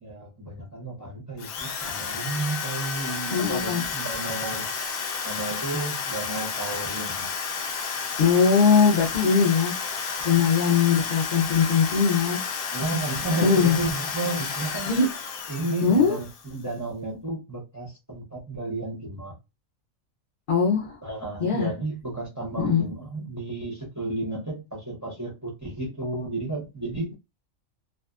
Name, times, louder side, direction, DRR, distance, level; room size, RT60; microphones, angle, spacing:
voice 1, 0.0-4.7 5.2-7.3 12.7-14.9 15.5-19.3 21.0-27.1, right 2 dB, 20° right, 0.5 m, -32 dB
Drill, 1.4-16.6, left 5 dB, 90° left, 1.0 m, -31 dB
voice 2, 3.3-3.8 8.2-9.7 10.2-12.4 13.4-13.8 14.9-15.1 15.8-16.2 20.5-21.0 21.4-21.7 22.6-22.8, left 6 dB, 55° left, 0.6 m, -20 dB
2.6 x 2.3 x 2.3 m
omnidirectional pair, 1.4 m